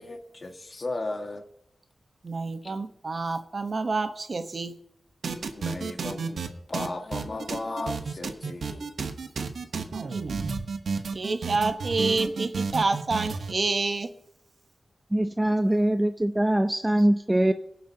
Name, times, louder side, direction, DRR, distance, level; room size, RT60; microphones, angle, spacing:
voice 1, 0.0-1.4 2.6-2.7 5.5-8.9, left 2 dB, 45° left, 4 dB, 1.7 m, -35 dB
voice 2, 2.2-4.7 10.1-10.2 10.5-10.6 11.1-14.1, right 3 dB, 50° right, 8 dB, 1.0 m, -28 dB
sound 1, 5.2-6.5 6.7-13.5, right 5 dB, 90° right, 1.0 m, -31 dB
voice 3, 15.1-17.5, right 1 dB, 15° right, 8 dB, 0.5 m, -23 dB
22.5 x 7.7 x 2.8 m, 0.79 s
wide cardioid pair, 95°, 0 cm